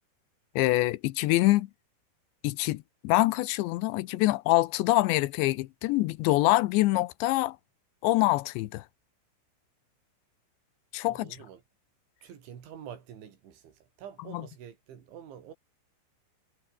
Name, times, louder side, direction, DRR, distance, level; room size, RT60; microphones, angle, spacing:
voice 1, 0.6-1.7 2.4-7.6 8.0-8.8 10.9-11.3, left 18 dB, 80° left, 2.8 m, -25 dB
voice 2, 11.1-11.6 12.2-15.5, right 9 dB, 70° right, 5.8 m, -47 dB
omnidirectional pair, 5.6 m